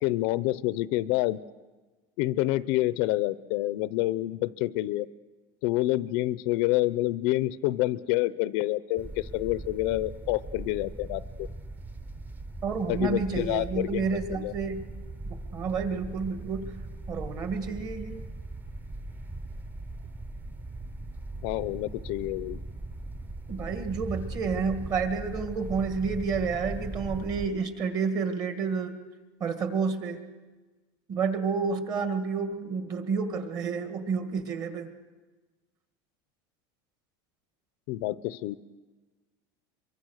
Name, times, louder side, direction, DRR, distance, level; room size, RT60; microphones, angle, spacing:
voice 1, 0.0-1.4 2.2-5.1 5.6-11.5 12.9-14.5 21.4-22.6 37.9-38.6, left 17 dB, 55° left, 17 dB, 0.6 m, -28 dB
sound 1, 9.0-27.5, right 2 dB, 15° right, 0.9 m, -39 dB
voice 2, 12.6-14.8 15.5-16.7 17.1-18.2 23.5-28.9 29.4-30.2 31.1-34.9, right 5 dB, 35° right, 7 dB, 2.0 m, -30 dB
24.0 x 23.5 x 6.5 m, 1.3 s
supercardioid pair, 160°, 12 cm